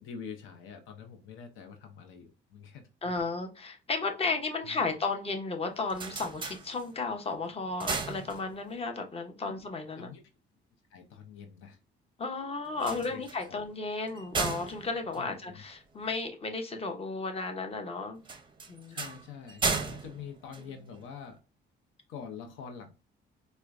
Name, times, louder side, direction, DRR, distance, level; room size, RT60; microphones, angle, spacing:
voice 1, 0.0-3.1 4.2-4.3 4.6-4.8 9.4-9.5 10.0-10.2 10.9-11.8 12.8-13.6 15.1-15.6 18.9-21.4 22.1-22.9, left 6 dB, 90° left, 0.6 m, -45 dB
voice 2, 3.0-10.1 12.2-18.2 18.7-19.0, left 3 dB, 30° left, 0.7 m, -34 dB
sound 1, 5.7-7.2 7.6-8.9 12.7-16.1 18.2-21.3, right 4 dB, 25° right, 0.5 m, -36 dB
4.3 x 2.1 x 2.4 m
cardioid pair, 90°, 20 cm